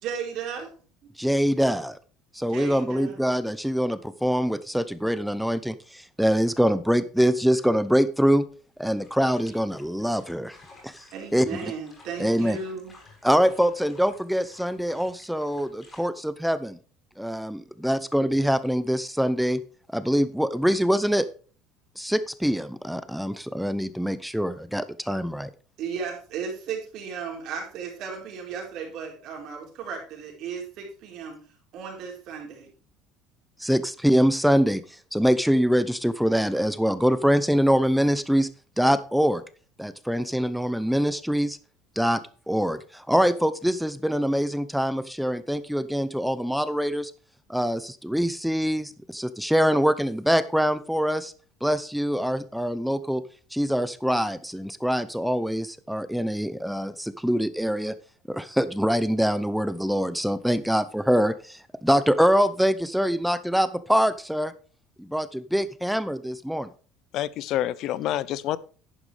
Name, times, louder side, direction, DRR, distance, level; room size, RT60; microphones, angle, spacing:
voice 1, 0.0-0.7 2.5-3.2 11.1-12.9 25.8-31.4 31.7-32.7, right 6 dB, 55° right, 1 dB, 4.2 m, -35 dB
voice 2, 1.2-2.0 2.3-8.4 8.8-10.6 10.8-11.0 11.3-11.5 12.2-12.6 13.2-16.8 17.2-19.6 19.9-21.3 22.0-25.5 33.6-34.8 35.1-38.5 38.8-39.4 39.8-41.6 42.0-42.2 42.5-47.1 47.5-51.3 51.6-53.2 53.5-58.0 58.3-64.5 65.0-66.7, equal, ahead, 14 dB, 0.6 m, -24 dB
sound 1, 9.0-16.0, left 3 dB, 20° left, 4.3 m, -55 dB
voice 3, 67.1-68.6, left 13 dB, 50° left, 19 dB, 0.6 m, -27 dB
11.0 x 9.4 x 3.3 m, 0.39 s
cardioid pair, 155°, 0 cm